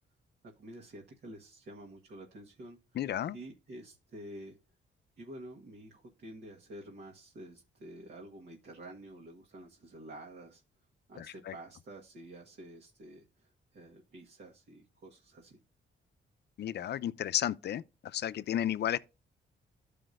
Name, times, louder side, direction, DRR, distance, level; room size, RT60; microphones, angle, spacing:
voice 1, 0.4-3.1 3.3-4.6 5.2-10.6 11.1-15.6, right 1 dB, 60° right, 1.5 m, -49 dB
voice 2, 3.0-3.4 11.2-11.5 16.6-19.0, left 11 dB, 60° left, 0.5 m, -33 dB
13.5 x 5.0 x 2.5 m
cardioid pair, 130°, 20 cm